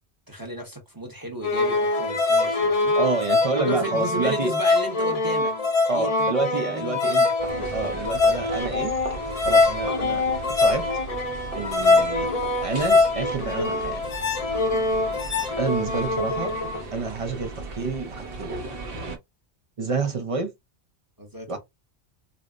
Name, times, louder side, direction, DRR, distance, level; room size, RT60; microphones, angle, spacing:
voice 1, 0.3-2.9 3.7-5.5 5.9-7.3 14.9-15.1 21.2-21.6, right 1 dB, 20° right, 0.9 m, -34 dB
sound 1, 1.4-16.8, left 3 dB, 35° left, 0.7 m, -23 dB
voice 2, 2.9-4.5 5.9-7.3 7.6-8.9 9.4-10.3 10.6-10.9 11.5-12.3 12.6-14.0 15.6-16.5 16.9-18.6 19.8-20.5 21.5-21.6, right 3 dB, 40° right, 0.5 m, -28 dB
sound 2, 7.4-19.2, right 3 dB, 55° right, 1.0 m, -37 dB
5.1 x 2.0 x 2.3 m
omnidirectional pair, 1.2 m